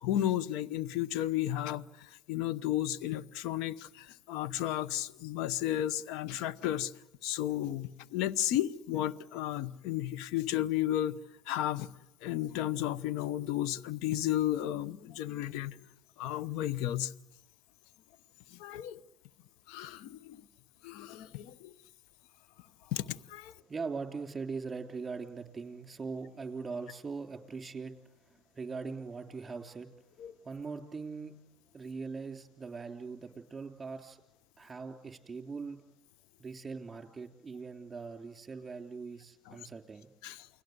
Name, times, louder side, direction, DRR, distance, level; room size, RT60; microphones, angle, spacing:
voice 1, 0.0-6.9 7.2-11.2 11.5-11.9 12.2-15.8 16.2-17.1 18.5-19.0 19.7-20.4 20.8-21.7 22.9-23.5 30.2-30.3 39.5-39.6 40.2-40.5, left 12 dB, 65° left, 0.9 m, -33 dB
voice 2, 23.7-27.9 28.2-29.9 30.4-31.3 31.7-34.2 34.6-35.8 36.4-40.1, right 4 dB, 20° right, 3.3 m, -41 dB
29.0 x 20.5 x 8.0 m
hypercardioid pair, 80°, 0 cm